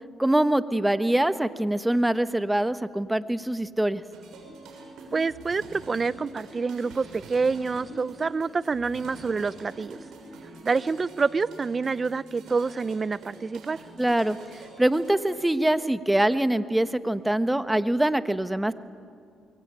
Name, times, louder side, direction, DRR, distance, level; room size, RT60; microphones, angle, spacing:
voice 1, 0.2-4.0 14.0-14.4 14.8-18.7, right 1 dB, 10° right, 12 dB, 1.2 m, -24 dB
sound 1, 4.1-15.4, right 2 dB, 80° right, 7.2 m, -46 dB
voice 2, 5.1-10.0 10.6-13.8, right 4 dB, 35° right, 17 dB, 0.8 m, -27 dB
26.5 x 23.5 x 8.9 m, 2.4 s
cardioid pair, 80°, 0 cm